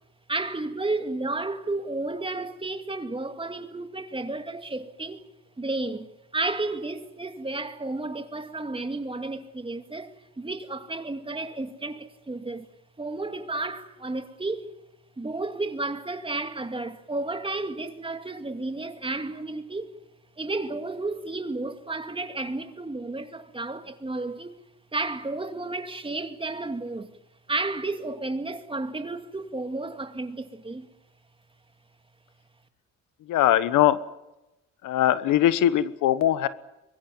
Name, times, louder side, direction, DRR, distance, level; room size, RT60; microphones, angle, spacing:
voice 1, 0.3-5.2 5.6-12.7 13.0-14.8 15.2-19.9 20.4-24.5 24.9-27.2 27.5-30.9, right 2 dB, 15° right, 2.3 m, -32 dB
voice 2, 33.3-34.0 34.8-36.5, left 12 dB, 85° left, 1.3 m, -21 dB
24.0 x 22.0 x 7.4 m
cardioid pair, 90°, 30 cm